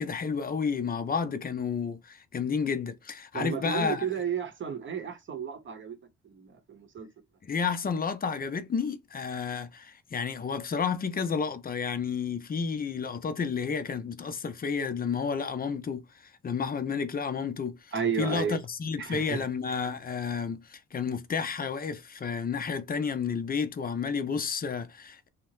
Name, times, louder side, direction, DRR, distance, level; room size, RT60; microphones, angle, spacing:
voice 1, 0.0-4.1 7.4-25.3, left 6 dB, 30° left, 0.5 m, -31 dB
voice 2, 3.3-6.0 6.2-7.1 17.9-18.6 19.0-19.4, right 7 dB, 40° right, 0.8 m, -32 dB
2.8 x 2.0 x 3.0 m
cardioid pair, 90°, 30 cm